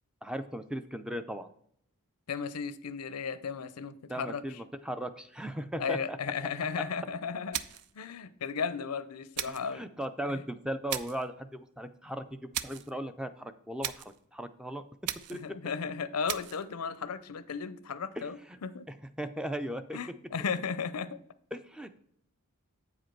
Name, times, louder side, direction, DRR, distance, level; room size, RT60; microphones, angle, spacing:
voice 1, 0.2-1.5 4.1-6.2 9.5-12.4 12.6-14.8 15.3-15.4 18.2-18.6 19.2-20.0 21.5-22.0, right 1 dB, 5° right, 10 dB, 0.3 m, -37 dB
voice 2, 2.3-4.6 5.8-7.6 8.0-9.9 10.3-10.4 15.3-18.9 19.9-21.2, left 6 dB, 90° left, 14 dB, 0.6 m, -35 dB
sound 1, 7.5-8.0 9.4-9.7 10.9-11.3 12.5-12.9 13.8-14.2 15.1-15.5 16.3-16.6, right 11 dB, 85° right, 0.4 m, -37 dB
8.3 x 5.0 x 4.5 m, 0.68 s
head